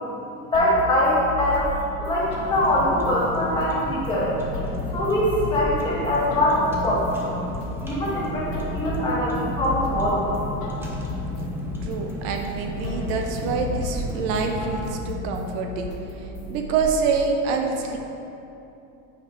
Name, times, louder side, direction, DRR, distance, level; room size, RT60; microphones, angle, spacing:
sound 1, 0.5-16.8, left 2 dB, 80° left, 1.4 m, -34 dB
voice 1, 0.5-1.7 2.0-4.3 4.9-7.4 7.8-10.2, left 1 dB, 15° left, -7 dB, 1.9 m, -23 dB
Car, 2.2-14.8, right 1 dB, 5° right, 0.9 m, -34 dB
voice 2, 11.8-18.0, right 5 dB, 70° right, 3 dB, 1.1 m, -26 dB
9.5 x 5.7 x 4.6 m, 2.9 s
cardioid pair, 170°, 32 cm